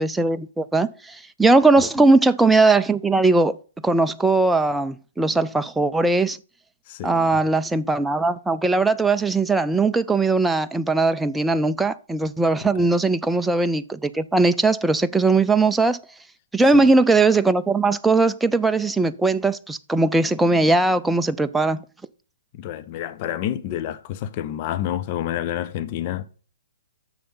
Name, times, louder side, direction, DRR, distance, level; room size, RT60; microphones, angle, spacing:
voice 1, 0.0-3.6 3.8-6.4 7.0-16.0 16.5-21.8, right 3 dB, 5° right, 0.4 m, -19 dB
voice 2, 6.9-7.3 16.7-16.9 22.5-26.2, left 11 dB, 35° left, 0.6 m, -29 dB
6.8 x 6.5 x 5.5 m
figure-of-eight pair, 120°, 0 cm